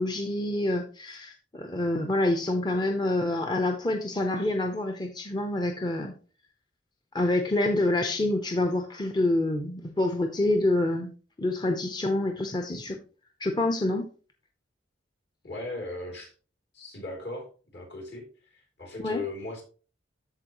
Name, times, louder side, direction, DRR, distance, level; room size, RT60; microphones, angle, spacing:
voice 1, 0.0-6.1 7.1-11.1 11.4-13.0 13.4-14.1 19.0-19.2, left 2 dB, 25° left, 4 dB, 0.7 m, -27 dB
voice 2, 15.4-16.3 16.7-19.6, left 2 dB, 65° left, 0 dB, 3.1 m, -38 dB
13.5 x 4.5 x 3.0 m, 0.38 s
head